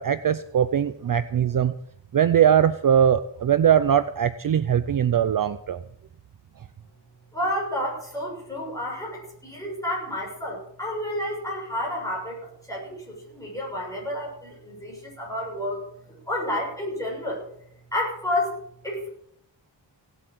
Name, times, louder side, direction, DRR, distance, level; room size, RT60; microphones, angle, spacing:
voice 1, 0.0-1.7 2.1-5.8, right 9 dB, 50° right, 13 dB, 0.5 m, -21 dB
voice 2, 7.3-15.8 16.1-17.4 17.9-18.6 18.8-19.1, left 1 dB, 5° left, -3 dB, 6.6 m, -30 dB
17.0 x 8.1 x 7.7 m, 0.70 s
wide cardioid pair, 180°, 44 cm